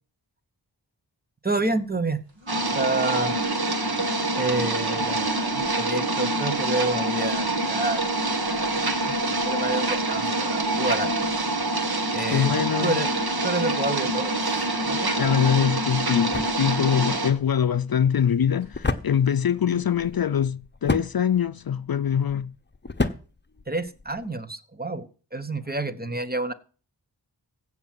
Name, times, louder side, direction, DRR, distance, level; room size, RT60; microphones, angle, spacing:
voice 1, 1.4-2.2 2.7-3.5 4.3-5.4 5.8-8.3 8.6-8.8 9.1-11.3 12.1-12.6 12.8-13.1 13.4-15.1 19.7-19.8 23.7-26.5, right 2 dB, 20° right, 1.1 m, -29 dB
sound 1, 1.9-19.9 20.2-20.3, right 3 dB, 90° right, 3.1 m, -47 dB
sound 2, 2.5-17.3, right 2 dB, 55° right, 1.7 m, -26 dB
voice 2, 12.3-13.0 15.2-22.5, left 8 dB, 55° left, 0.5 m, -23 dB
sound 3, 15.5-24.3, left 3 dB, 25° left, 1.0 m, -33 dB
16.0 x 6.0 x 7.6 m
wide cardioid pair, 60°, 44 cm